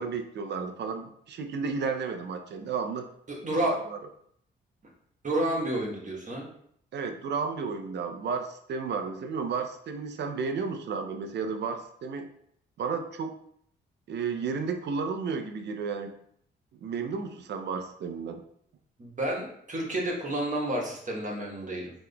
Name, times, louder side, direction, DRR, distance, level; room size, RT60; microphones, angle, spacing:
voice 1, 0.0-3.1 3.6-4.0 6.9-12.3 12.8-13.4 14.1-16.1 16.8-18.4, right 5 dB, 60° right, 6 dB, 0.5 m, -32 dB
voice 2, 3.3-3.7 5.2-6.5 19.0-21.9, right 1 dB, 40° right, -2 dB, 1.1 m, -30 dB
3.7 x 2.9 x 2.2 m, 0.68 s
supercardioid pair, 55°, 21 cm